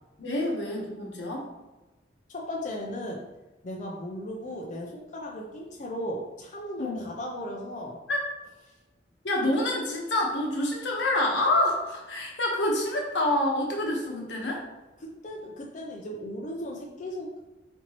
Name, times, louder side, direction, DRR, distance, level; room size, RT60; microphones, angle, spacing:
voice 1, 0.2-1.5 6.8-7.1 8.1-8.2 9.2-14.6, left 1 dB, 85° left, -1 dB, 1.1 m, -27 dB
voice 2, 2.3-3.2 3.6-8.0 15.0-17.4, equal, 45° left, -1 dB, 0.5 m, -36 dB
4.3 x 4.1 x 2.9 m, 1.1 s
head